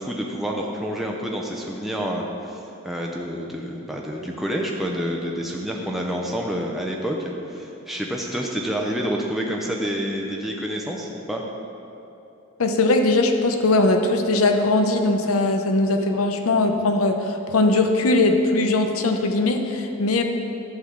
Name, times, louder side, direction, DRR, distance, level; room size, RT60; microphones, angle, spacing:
voice 1, 0.0-2.6 2.8-7.2 7.5-11.4, equal, ahead, -1 dB, 0.5 m, -28 dB
voice 2, 12.6-20.2, left 2 dB, 80° left, 5 dB, 0.7 m, -20 dB
11.5 x 3.8 x 7.1 m, 2.9 s
head